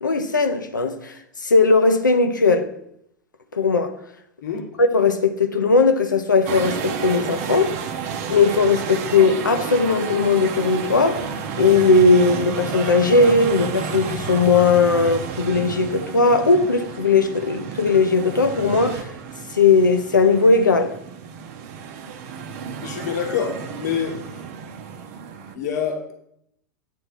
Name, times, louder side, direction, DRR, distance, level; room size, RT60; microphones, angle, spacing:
voice 1, 0.0-2.7 3.5-3.9 4.8-7.8 8.3-11.3 11.6-19.1 19.5-20.9, left 4 dB, 85° left, 0.7 m, -18 dB
sound 1, 6.5-25.6, right 7 dB, 55° right, 0.7 m, -31 dB
voice 2, 22.8-24.4 25.5-26.1, left 7 dB, 65° left, 1.2 m, -26 dB
9.3 x 3.3 x 5.7 m
figure-of-eight pair, 95°, 10 cm